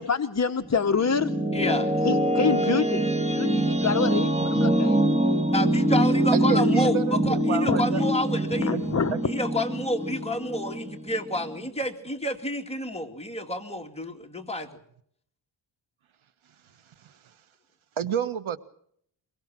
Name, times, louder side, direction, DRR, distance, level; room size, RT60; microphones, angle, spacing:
voice 1, 0.0-1.3 2.0-5.0 6.5-6.7 7.7-7.8 8.6-9.1, left 5 dB, 35° left, 7 dB, 0.9 m, -27 dB
sound 1, 0.6-11.7, right 1 dB, 15° right, 1.8 m, -24 dB
voice 2, 1.5-1.9 5.5-8.8 9.2-14.8, left 1 dB, 15° left, 2 dB, 2.5 m, -29 dB
voice 3, 6.5-8.0 8.7-8.8 9.1-9.2 18.0-18.6, right 8 dB, 90° right, 12 dB, 1.3 m, -29 dB
23.5 x 22.0 x 6.1 m, 0.67 s
wide cardioid pair, 130°, 47 cm